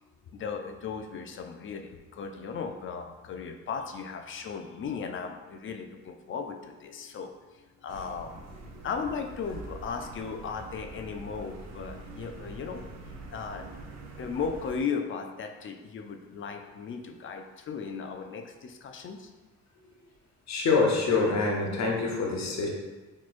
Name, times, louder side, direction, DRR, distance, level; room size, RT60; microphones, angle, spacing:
voice 1, 0.3-8.4 8.8-12.8 13.3-13.7 14.2-19.3, left 5 dB, 45° left, 5 dB, 0.4 m, -36 dB
sound 1, 7.9-14.8, right 2 dB, 60° right, 0.6 m, -45 dB
voice 2, 20.5-22.7, left 4 dB, 65° left, -1 dB, 0.9 m, -26 dB
4.0 x 3.1 x 2.5 m, 1.2 s
cardioid pair, 90°, 30 cm